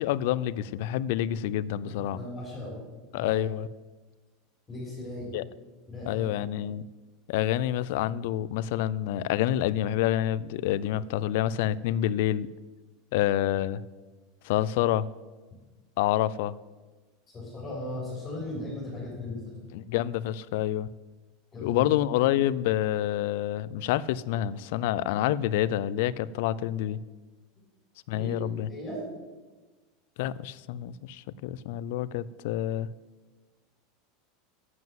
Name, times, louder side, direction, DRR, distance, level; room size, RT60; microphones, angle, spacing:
voice 1, 0.0-2.2 3.1-3.7 5.3-5.4 6.1-6.8 7.3-12.5 13.1-13.8 14.4-15.1 16.0-16.5 19.7-20.9 21.6-27.0 28.1-28.7 30.2-32.9, left 12 dB, 70° left, 18 dB, 0.4 m, -27 dB
voice 2, 1.8-2.8 3.1-3.4 4.7-5.4 5.9-6.3 17.3-19.7 21.5-21.9 28.1-28.4 28.7-29.1, left 2 dB, 20° left, -5 dB, 4.1 m, -37 dB
7.8 x 7.7 x 7.5 m, 1.3 s
supercardioid pair, 130°, 0 cm